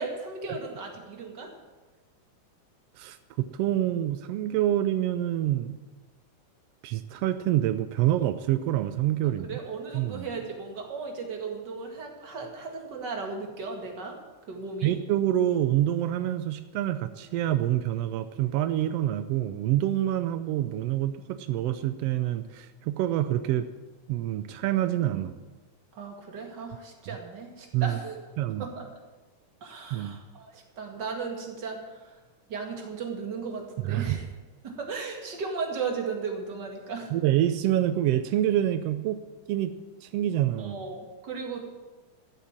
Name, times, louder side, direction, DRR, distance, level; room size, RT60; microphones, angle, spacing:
voice 1, 0.0-1.5 9.2-14.2 14.5-15.0 25.9-28.3 28.6-28.9 29.6-32.2 32.5-34.2 34.6-37.1 40.6-41.7, right 4 dB, 40° right, 1 dB, 2.3 m, -36 dB
voice 2, 3.0-5.8 6.8-9.6 9.9-10.3 14.8-23.7 24.1-25.4 27.1-27.2 27.7-28.0 28.4-28.7 29.9-30.2 33.8-34.2 37.1-39.2 39.5-39.7 40.0-40.8, right 13 dB, 85° right, 11 dB, 1.4 m, -27 dB
14.0 x 8.3 x 7.4 m, 1.2 s
omnidirectional pair, 3.5 m